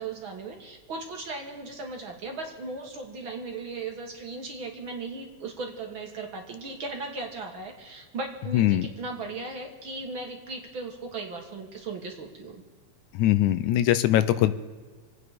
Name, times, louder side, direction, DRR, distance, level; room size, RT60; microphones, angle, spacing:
voice 1, 0.0-12.6, right 3 dB, 45° right, 2 dB, 2.2 m, -37 dB
voice 2, 8.5-8.9 13.1-14.5, left 13 dB, 80° left, 13 dB, 2.0 m, -21 dB
26.5 x 9.5 x 5.1 m, 1.5 s
omnidirectional pair, 3.6 m